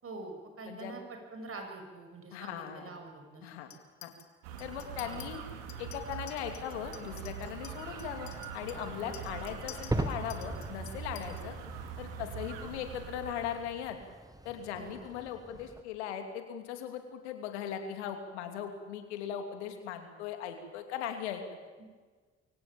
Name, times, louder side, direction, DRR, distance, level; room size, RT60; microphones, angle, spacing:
voice 1, 0.0-3.5 5.0-5.3 9.0-9.2 14.8-15.0 21.8-21.9, right 3 dB, 40° right, 4 dB, 6.8 m, -45 dB
voice 2, 2.3-2.9 3.4-3.7 4.0-4.1 4.6-5.4 5.8-11.5 12.0-14.0 14.4-21.4, left 9 dB, 80° left, 6 dB, 2.8 m, -39 dB
Chink clink, 3.7-4.3 4.6-5.3 5.7-11.4, left 11 dB, 60° left, 2.6 m, -51 dB
sound 1, 4.4-13.7, right 7 dB, 75° right, 2.9 m, -43 dB
sound 2, 7.9-15.8, right 2 dB, 10° right, 1.9 m, -41 dB
24.0 x 16.5 x 8.8 m, 1.4 s
hypercardioid pair, 60°, 33 cm